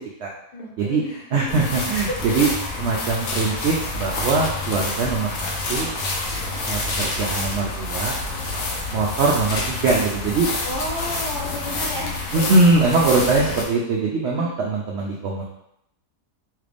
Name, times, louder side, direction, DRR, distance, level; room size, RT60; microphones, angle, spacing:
voice 1, 0.5-1.4 2.3-2.5 6.4-6.6 10.6-12.5 12.8-12.9 13.4-13.6 14.2-14.7, left 1 dB, 50° left, -2 dB, 0.7 m, -33 dB
voice 2, 1.3-2.5 2.8-5.9 6.7-8.2 8.9-10.5 12.3-15.4, right 3 dB, 85° right, -2 dB, 0.6 m, -21 dB
sound 1, 1.5-13.6, left 2 dB, 65° left, 1.1 m, -28 dB
3.3 x 2.4 x 3.3 m, 0.78 s
omnidirectional pair, 1.7 m